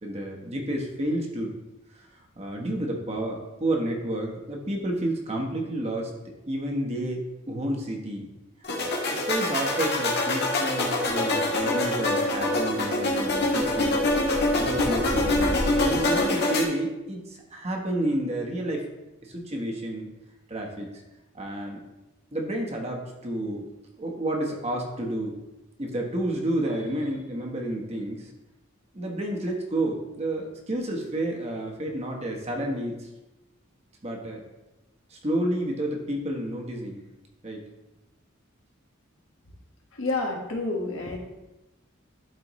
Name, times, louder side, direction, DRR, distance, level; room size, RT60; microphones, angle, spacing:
voice 1, 0.0-1.6 1.9-2.1 2.4-6.1 6.5-8.3 8.8-14.0 14.6-18.9 19.2-20.1 20.5-20.9 21.3-21.8 22.3-23.6 23.9-25.4 25.8-28.3 28.9-33.1 34.0-34.5 35.1-37.0 37.4-37.6, right 1 dB, 35° right, 0 dB, 1.2 m, -30 dB
sound 1, 8.6-16.6, left 2 dB, 55° left, 1.4 m, -25 dB
voice 2, 39.9-41.2, left 2 dB, 85° left, 0 dB, 1.5 m, -29 dB
12.0 x 4.3 x 3.1 m, 1.0 s
head